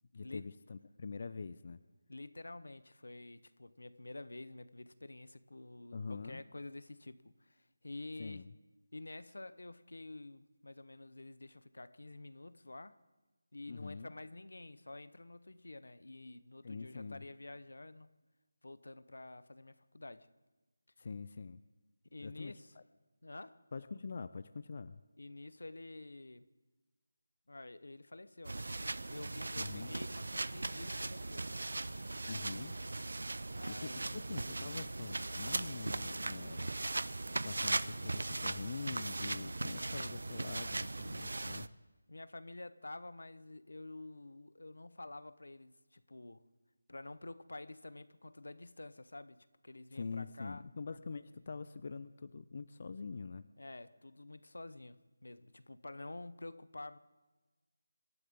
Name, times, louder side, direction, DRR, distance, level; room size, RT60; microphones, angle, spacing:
voice 1, 0.1-1.8 5.9-6.4 8.2-8.5 13.7-14.1 16.6-17.3 21.0-21.6 22.2-22.8 23.7-25.0 29.6-29.9 32.3-32.8 33.7-36.7 37.4-41.7 49.9-53.4, left 4 dB, 45° left, 0.5 m, -44 dB
voice 2, 2.1-8.5 8.9-13.0 13.5-18.1 18.6-20.3 22.1-22.7 23.2-23.6 25.2-26.5 27.5-28.7 29.1-31.5 33.6-34.2 42.1-46.4 46.9-50.6 53.6-57.0, left 2 dB, 80° left, 0.9 m, -49 dB
sound 1, 28.4-41.7, right 2 dB, 75° right, 0.6 m, -39 dB
26.0 x 13.0 x 3.7 m
figure-of-eight pair, 170°, 0 cm